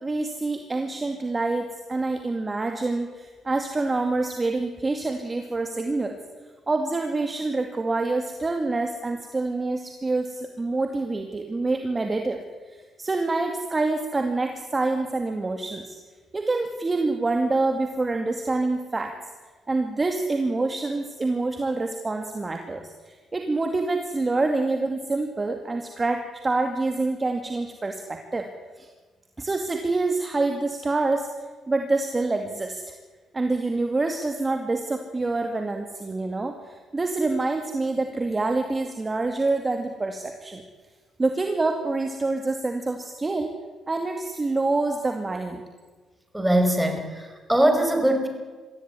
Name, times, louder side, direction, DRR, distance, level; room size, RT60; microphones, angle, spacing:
voice 1, 0.0-6.2 6.7-12.4 12.7-16.0 16.3-19.1 19.7-28.5 28.8-28.9 29.4-31.3 31.7-32.9 33.3-40.6 41.2-43.5 43.9-45.6, right 3 dB, 25° right, 5 dB, 2.3 m, -26 dB
voice 2, 46.3-48.3, right 1 dB, 5° right, 4 dB, 5.4 m, -21 dB
23.0 x 15.5 x 9.9 m, 1.4 s
cardioid pair, 90°, 0 cm